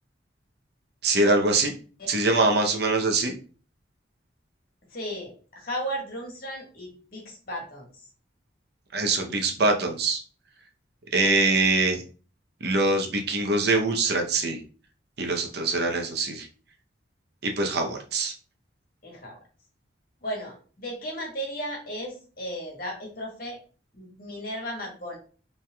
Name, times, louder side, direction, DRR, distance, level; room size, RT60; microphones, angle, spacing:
voice 1, 1.0-1.7 2.1-3.4 8.9-10.2 11.1-12.0 12.6-14.6 15.2-16.5 17.4-18.3, right 2 dB, 55° right, 3 dB, 0.8 m, -23 dB
voice 2, 4.9-7.9 11.2-11.6 19.0-19.4 20.2-23.6 23.9-25.2, equal, 50° left, -1 dB, 1.7 m, -35 dB
5.7 x 3.4 x 2.3 m, 0.38 s
head